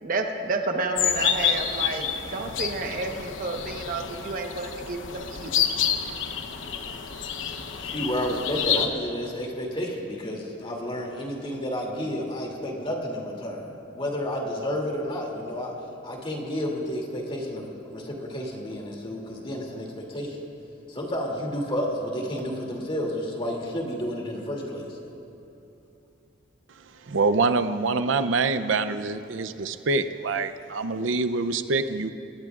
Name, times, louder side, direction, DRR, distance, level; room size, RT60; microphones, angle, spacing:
voice 1, 0.0-5.5, right 3 dB, 45° right, 3 dB, 1.1 m, -30 dB
sound 1, 1.0-8.9, left 8 dB, 85° left, 0.9 m, -28 dB
voice 2, 7.8-15.7 16.0-20.4 20.9-25.0, equal, 30° left, -1 dB, 2.7 m, -31 dB
voice 3, 26.8-32.1, right 3 dB, 90° right, 11 dB, 0.6 m, -25 dB
27.5 x 20.0 x 2.5 m, 2.9 s
head